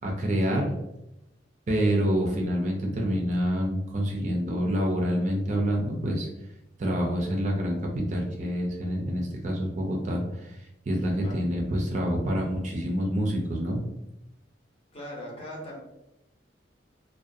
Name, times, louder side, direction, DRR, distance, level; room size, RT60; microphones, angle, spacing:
voice 1, 0.0-0.7 1.7-6.3 6.8-10.6 10.9-13.8, equal, 40° right, 0 dB, 0.4 m, -27 dB
voice 2, 14.9-15.8, equal, 30° left, -3 dB, 0.7 m, -39 dB
2.4 x 2.2 x 2.5 m, 0.90 s
head